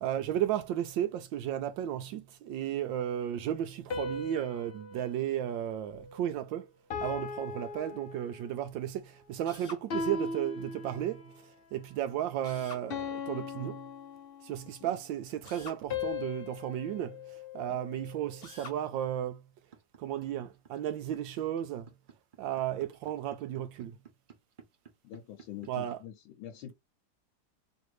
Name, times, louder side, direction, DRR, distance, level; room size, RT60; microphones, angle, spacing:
voice 1, 0.0-6.7 7.0-13.9 14.4-19.5 20.0-21.9 22.4-24.0 25.7-26.0, right 11 dB, 80° right, 1.2 m, -34 dB
sound 1, 3.9-6.4 6.9-8.7 9.9-11.4 12.9-14.8 15.9-18.3, left 4 dB, 65° left, 0.5 m, -39 dB
Drill, 9.4-9.9 12.4-12.9 15.4-15.8 18.4-18.8, left 3 dB, 40° left, 1.0 m, -46 dB
sound 2, 19.7-26.0, right 6 dB, 55° right, 0.5 m, -54 dB
voice 2, 25.0-26.7, left 11 dB, 85° left, 1.5 m, -45 dB
3.3 x 2.6 x 4.6 m
omnidirectional pair, 2.1 m